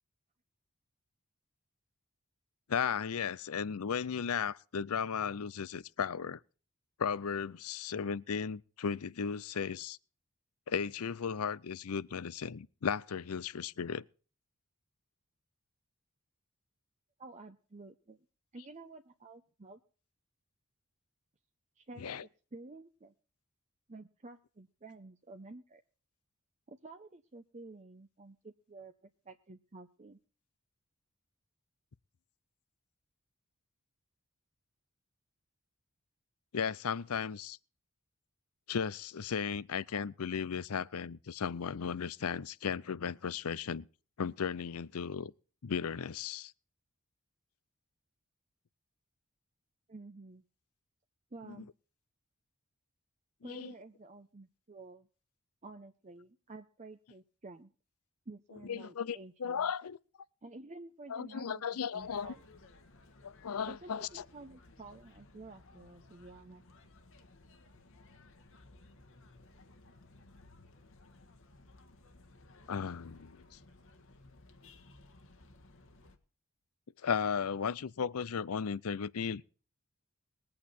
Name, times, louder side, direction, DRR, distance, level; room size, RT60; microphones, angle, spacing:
voice 1, 2.7-6.4 7.0-10.0 10.7-14.0 22.0-22.2 36.5-37.6 38.7-43.9 44.2-45.3 45.6-46.5 51.5-51.6 53.5-53.7 58.7-60.0 61.1-62.3 63.2-64.2 72.7-73.4 77.0-79.4, left 6 dB, 80° left, 0.6 m, -35 dB
voice 2, 17.2-18.2 18.5-19.8 21.8-23.1 23.9-25.8 26.7-30.2 49.9-50.4 51.3-51.7 53.4-55.1 55.6-57.7 58.3-59.7 60.4-62.4 63.7-66.6, right 2 dB, 30° right, 0.8 m, -51 dB
sound 1, 62.0-76.2, left 2 dB, 60° left, 1.6 m, -59 dB
21.0 x 8.7 x 4.2 m
head